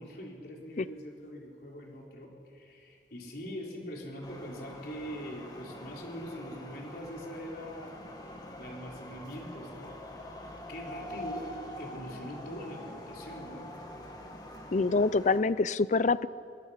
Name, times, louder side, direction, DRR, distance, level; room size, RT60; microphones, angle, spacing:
voice 1, 0.0-8.1 8.5-10.0 10.7-13.7, equal, 60° left, -1 dB, 4.3 m, -43 dB
sound 1, 4.2-15.4, left 1 dB, 25° left, 2.1 m, -45 dB
voice 2, 14.7-16.3, left 3 dB, 45° left, 17 dB, 0.5 m, -25 dB
24.0 x 22.0 x 5.9 m, 2.5 s
head